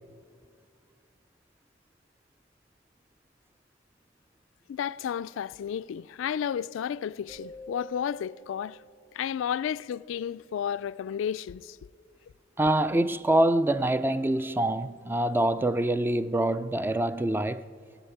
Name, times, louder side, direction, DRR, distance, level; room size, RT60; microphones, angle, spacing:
voice 1, 4.7-8.8 9.2-11.8, left 8 dB, 75° left, 0.3 m, -32 dB
sound 1, 7.3-9.9, right 1 dB, 50° right, 4.5 m, -48 dB
voice 2, 12.6-17.6, right 1 dB, 10° right, 0.3 m, -25 dB
16.0 x 7.9 x 9.1 m
head